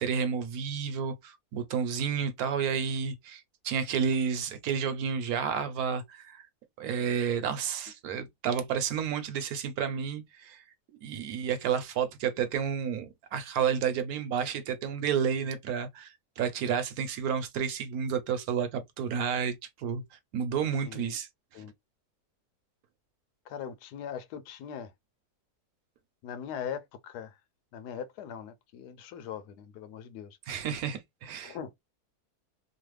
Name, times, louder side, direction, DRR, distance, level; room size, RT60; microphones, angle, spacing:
voice 1, 0.0-6.5 6.8-10.6 11.0-20.0 20.3-21.3 21.5-21.6 30.5-31.6, right 7 dB, 70° right, 1.1 m, -31 dB
voice 2, 23.5-24.9 26.2-27.4 27.7-30.4 31.4-31.7, left 8 dB, 90° left, 1.2 m, -40 dB
3.1 x 2.0 x 3.1 m
omnidirectional pair, 1.7 m